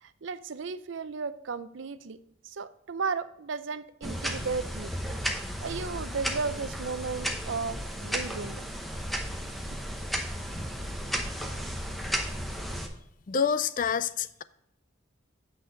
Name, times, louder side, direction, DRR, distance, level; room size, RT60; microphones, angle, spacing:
voice 1, 0.0-2.2 2.4-5.0 5.4-8.8, right 4 dB, 65° right, 0.5 m, -35 dB
sound 1, 4.0-12.9, equal, ahead, 0.8 m, -34 dB
voice 2, 13.3-14.4, left 6 dB, 40° left, 0.4 m, -27 dB
8.4 x 6.2 x 3.8 m
head